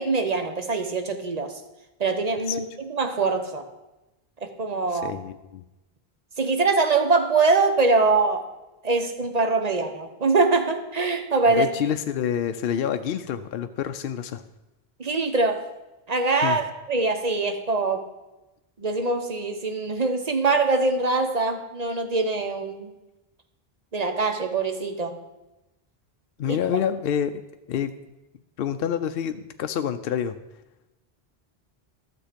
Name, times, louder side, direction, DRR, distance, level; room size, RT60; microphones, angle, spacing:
voice 1, 0.0-1.6 2.0-3.7 4.4-5.1 6.4-8.5 8.8-11.7 15.0-15.6 16.1-18.0 18.8-22.9 23.9-25.2 26.5-26.6, right 3 dB, 40° right, 6 dB, 1.0 m, -23 dB
voice 2, 5.0-5.6 11.6-14.4 16.4-16.6 26.4-27.3 27.7-27.9 28.6-30.4, left 9 dB, 70° left, 8 dB, 0.7 m, -27 dB
13.0 x 6.9 x 5.1 m, 1.0 s
omnidirectional pair, 1.0 m